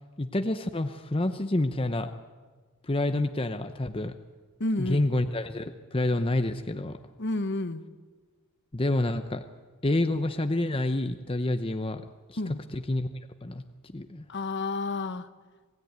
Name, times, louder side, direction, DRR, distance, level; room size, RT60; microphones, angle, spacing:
voice 1, 0.2-2.1 2.8-4.1 4.8-7.0 8.7-9.4 9.8-12.0 12.3-12.4 12.7-13.1 13.4-14.2, left 1 dB, 25° left, 7 dB, 0.8 m, -28 dB
voice 2, 4.6-5.1 7.2-7.9 12.4-12.6 14.3-15.3, left 2 dB, 50° left, 11 dB, 1.2 m, -30 dB
27.0 x 16.5 x 9.6 m, 1.4 s
head